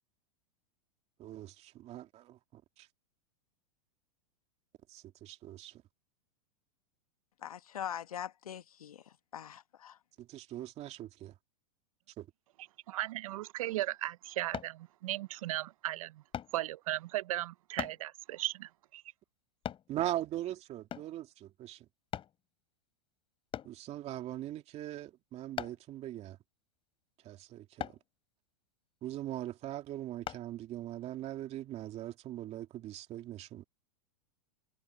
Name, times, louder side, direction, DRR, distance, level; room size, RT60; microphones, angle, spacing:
voice 1, 1.2-2.9 4.9-5.8 10.2-11.3 12.2-12.3 19.9-21.9 23.6-26.4 27.2-28.0 29.0-33.6, right 13 dB, 35° right, 2.7 m, -41 dB
voice 2, 7.4-10.0, left 9 dB, 90° left, 1.6 m, -42 dB
voice 3, 12.9-16.2 16.5-19.0, right 15 dB, 70° right, 0.7 m, -36 dB
sound 1, 14.5-14.8 16.3-16.6 17.8-18.0 19.6-19.9 20.9-21.2 22.1-22.4 23.5-23.8 25.6-25.9 27.8-28.0 30.3-30.4 31.0-31.1, left 10 dB, 30° left, 5.7 m, -39 dB
hypercardioid pair, 115°, 18 cm